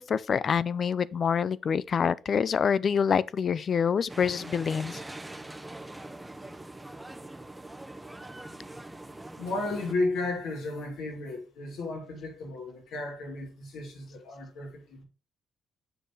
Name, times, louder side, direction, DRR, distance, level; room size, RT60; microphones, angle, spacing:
voice 1, 0.0-5.0, left 7 dB, 50° left, 0.4 m, -26 dB
sound 1, 4.1-9.9, right 1 dB, 10° right, 0.8 m, -43 dB
voice 2, 9.4-15.0, left 2 dB, 85° left, 3.0 m, -34 dB
7.7 x 6.3 x 3.1 m
cardioid pair, 90°, 0 cm